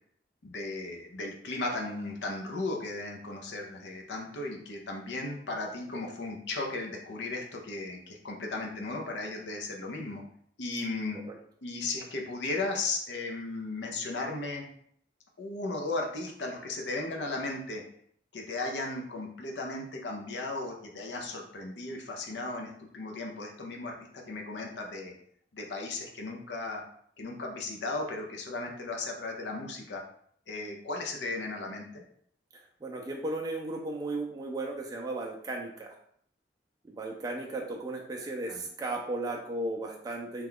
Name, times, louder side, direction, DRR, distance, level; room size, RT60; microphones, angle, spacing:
voice 1, 0.4-10.2 10.6-11.2 11.6-14.6 15.4-17.8 18.3-25.1 25.5-26.8 27.2-30.0 30.5-32.0 38.5-38.7, left 2 dB, 75° left, 1 dB, 0.6 m, -36 dB
voice 2, 32.8-35.9 36.8-40.5, right 2 dB, 20° right, -1 dB, 0.3 m, -35 dB
2.9 x 2.2 x 3.7 m, 0.64 s
head